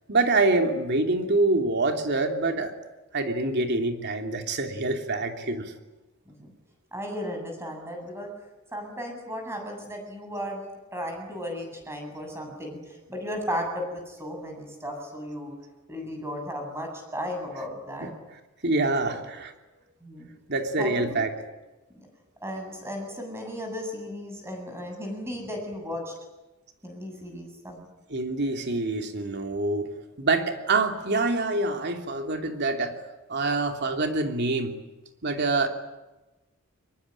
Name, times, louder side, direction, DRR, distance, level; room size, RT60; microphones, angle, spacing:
voice 1, 0.1-2.7 3.1-5.7 18.0-18.1 18.6-19.5 20.5-21.3 28.1-33.0 33.3-34.7 35.2-35.7, right 2 dB, 55° right, 4 dB, 3.1 m, -26 dB
voice 2, 6.9-8.3 8.7-10.6 10.9-15.5 15.9-18.1 19.0-19.1 20.0-20.3 20.8-21.2 21.9-22.1 22.4-26.1 26.8-27.9, equal, 10° right, 3 dB, 7.9 m, -35 dB
24.5 x 22.0 x 9.9 m, 1.1 s
head